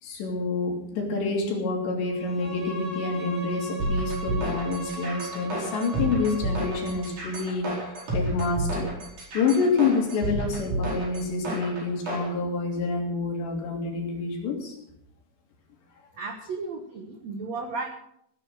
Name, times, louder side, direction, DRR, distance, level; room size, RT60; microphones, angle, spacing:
voice 1, 0.0-8.9 9.3-14.8, left 4 dB, 75° left, 0 dB, 5.2 m, -28 dB
Bowed string instrument, 2.1-7.2, right 2 dB, 25° right, 5.5 m, -38 dB
sound 1, 3.8-12.3, right 1 dB, 40° right, 5.9 m, -30 dB
voice 2, 16.2-17.9, right 4 dB, 85° right, 4 dB, 1.5 m, -34 dB
17.5 x 9.8 x 6.3 m, 0.73 s
omnidirectional pair, 5.2 m